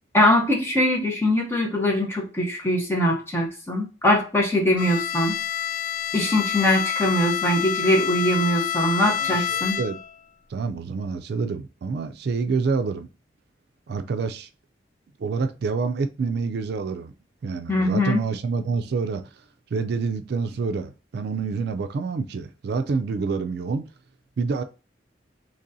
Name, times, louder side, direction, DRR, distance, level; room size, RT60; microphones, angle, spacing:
voice 1, 0.1-5.3 6.1-9.8 17.7-18.2, left 1 dB, 15° left, 1.0 m, -22 dB
Bowed string instrument, 4.8-10.2, left 10 dB, 45° left, 0.3 m, -28 dB
voice 2, 9.0-10.0 10.5-13.1 13.9-14.5 15.2-17.1 17.4-19.2 19.7-23.8 24.4-24.6, right 4 dB, 60° right, 0.3 m, -27 dB
4.0 x 3.0 x 2.6 m
head